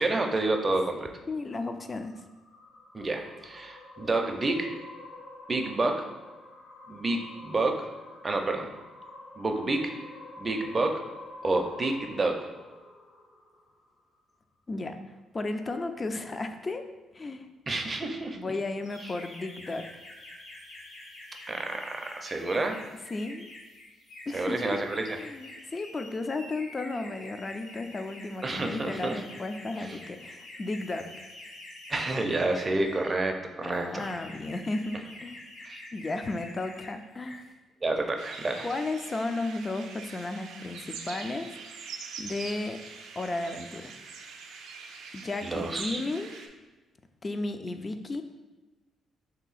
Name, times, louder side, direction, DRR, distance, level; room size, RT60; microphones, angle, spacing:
voice 1, 0.0-1.1 2.9-4.7 5.5-6.0 6.9-7.9 8.2-8.7 9.4-9.9 10.4-11.0 11.4-12.5 17.7-18.5 21.5-22.8 24.3-25.2 28.4-29.2 29.8-30.0 31.9-34.1 35.6-35.8 37.8-38.7 45.4-46.0, right 2 dB, 30° right, 4 dB, 0.5 m, -29 dB
voice 2, 1.3-2.1 14.7-15.0 15.3-16.9 17.1-17.5 18.4-19.9 23.1-23.5 24.3-24.8 25.1-31.1 33.6-35.4 35.9-37.4 38.6-41.6 42.2-42.8 43.2-44.0 45.1-46.3 47.2-48.2, left 2 dB, 30° left, 8 dB, 0.3 m, -34 dB
sound 1, 1.5-14.0, left 2 dB, 45° left, 1.0 m, -48 dB
sound 2, 18.8-33.1 33.7-36.9 37.2-37.5, left 1 dB, 75° left, 1.1 m, -47 dB
sound 3, 38.2-46.5, right 5 dB, 85° right, 0.4 m, -44 dB
3.3 x 2.8 x 4.0 m, 1.2 s
cardioid pair, 90°, 0 cm